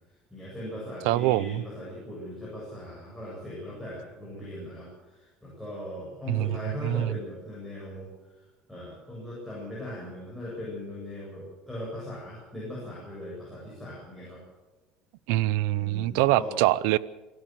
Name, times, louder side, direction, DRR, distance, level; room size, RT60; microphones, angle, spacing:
voice 1, 0.3-8.3 8.7-14.4 15.7-16.6, left 1 dB, ahead, -7 dB, 7.9 m, -39 dB
voice 2, 1.1-1.6 6.3-7.2 15.3-17.0, right 16 dB, 80° right, 20 dB, 0.7 m, -24 dB
26.0 x 13.0 x 7.6 m, 1.1 s
cardioid pair, 155°, 2 cm